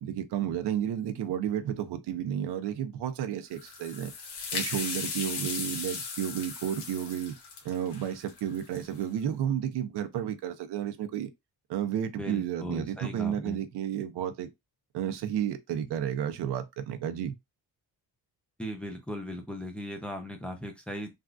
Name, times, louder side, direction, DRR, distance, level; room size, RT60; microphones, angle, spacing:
voice 1, 0.0-4.1 4.5-7.4 7.6-11.3 11.7-14.5 14.9-17.4, right 10 dB, 90° right, 0.6 m, -32 dB
sound 1, 3.5-9.0, left 5 dB, 90° left, 1.1 m, -37 dB
voice 2, 12.2-13.6 18.6-21.1, left 1 dB, 5° left, 0.5 m, -37 dB
3.5 x 2.4 x 2.3 m
cardioid pair, 145°, 39 cm